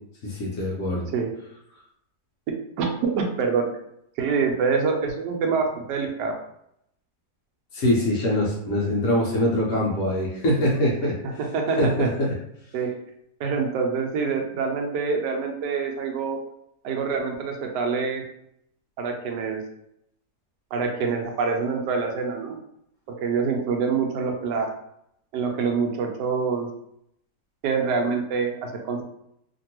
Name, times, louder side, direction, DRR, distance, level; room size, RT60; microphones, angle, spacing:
voice 1, 0.2-1.1 7.7-11.2 11.8-12.3, left 1 dB, 60° left, -3 dB, 0.9 m, -23 dB
voice 2, 2.8-3.7 4.2-6.3 11.4-12.1 12.7-12.9 13.4-16.4 16.8-18.2 19.0-19.6 20.7-22.6 23.2-24.7 25.3-26.7 27.6-29.0, right 5 dB, 85° right, 2 dB, 1.2 m, -25 dB
2.9 x 2.6 x 2.8 m, 0.75 s
omnidirectional pair, 1.8 m